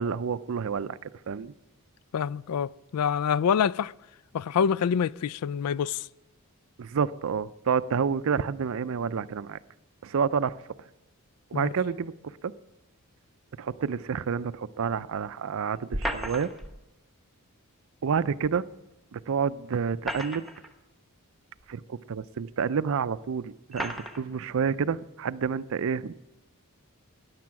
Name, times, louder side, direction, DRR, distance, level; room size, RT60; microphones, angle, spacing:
voice 1, 0.0-1.5 6.8-9.6 10.0-10.6 11.5-12.5 13.6-16.5 18.0-18.6 19.1-20.4 21.7-26.1, right 6 dB, 65° right, 0.5 m, -29 dB
voice 2, 2.1-3.9 4.3-6.1 11.5-11.7, left 7 dB, 80° left, 0.4 m, -26 dB
sound 1, 15.9-16.7 18.4-18.5 19.8-20.7 21.6-21.7 22.6-22.7 23.7-24.2, right 1 dB, ahead, 1.0 m, -33 dB
13.5 x 10.5 x 5.9 m
head